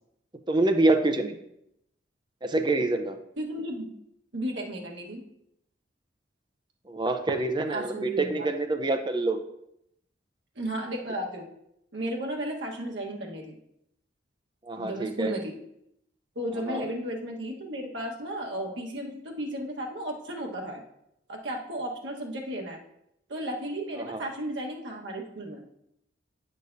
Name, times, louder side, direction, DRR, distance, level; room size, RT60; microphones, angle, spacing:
voice 1, 0.5-1.4 2.4-3.2 6.9-9.4 14.6-15.3 16.7-16.9 24.0-24.2, right 2 dB, 25° right, 6 dB, 0.6 m, -26 dB
voice 2, 3.4-3.9 4.3-5.2 7.7-8.5 10.5-11.5 11.9-13.6 14.8-15.5 16.3-20.8 21.3-22.8 23.3-25.6, right 1 dB, 65° right, 0 dB, 1.4 m, -34 dB
10.0 x 6.6 x 2.7 m, 0.79 s
head